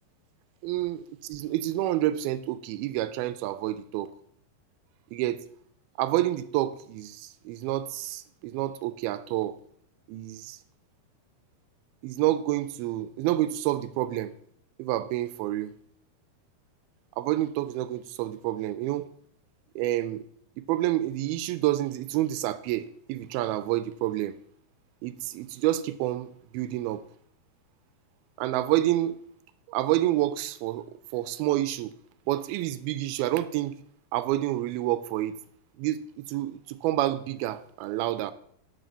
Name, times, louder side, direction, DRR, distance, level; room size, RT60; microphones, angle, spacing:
voice 1, 0.6-4.1 5.1-5.4 6.0-9.6 10.1-10.6 12.0-14.3 14.8-15.7 17.2-19.1 19.8-20.2 20.6-24.4 25.0-27.0 28.4-29.2 29.7-30.9 31.1-32.0 32.3-33.8 34.1-35.4 35.8-38.3, right 14 dB, 80° right, 2.4 m, -28 dB
11.5 x 5.1 x 6.8 m
omnidirectional pair, 4.6 m